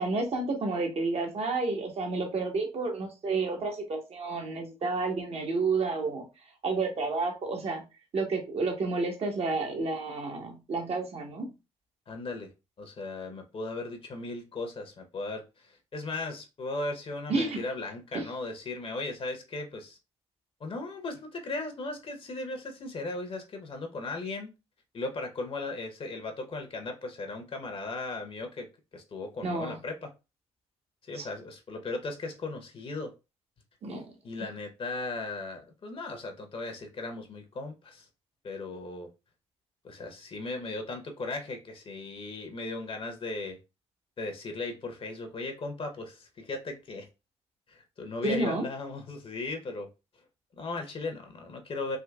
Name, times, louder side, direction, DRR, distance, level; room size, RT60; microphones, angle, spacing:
voice 1, 0.0-6.2 6.6-7.8 8.1-11.5 17.3-17.6 18.1-18.2 29.4-29.8 31.2-31.3 33.8-34.1 48.2-48.7, right 3 dB, 50° right, 1.1 m, -30 dB
voice 2, 12.1-12.5 12.8-20.0 20.6-24.5 24.9-30.1 31.1-33.1 34.2-38.1 38.4-39.1 39.8-43.6 44.2-47.1 47.7-49.9 50.6-52.0, left 3 dB, 45° left, 0.8 m, -37 dB
3.7 x 2.7 x 2.3 m
hypercardioid pair, 45°, 13 cm